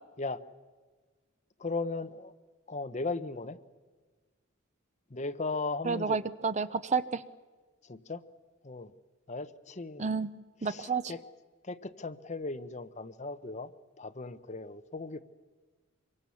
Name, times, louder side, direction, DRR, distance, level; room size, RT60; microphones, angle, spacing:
voice 1, 1.6-2.3 2.7-3.6 5.1-6.2 7.9-8.2 8.6-8.9 9.3-10.1 10.6-11.3 11.6-13.7 14.0-15.2, left 3 dB, 35° left, 10 dB, 0.9 m, -37 dB
voice 2, 5.8-7.2 10.0-10.3 10.6-11.1, right 5 dB, 35° right, 13 dB, 0.7 m, -30 dB
25.5 x 23.5 x 7.1 m, 1.4 s
head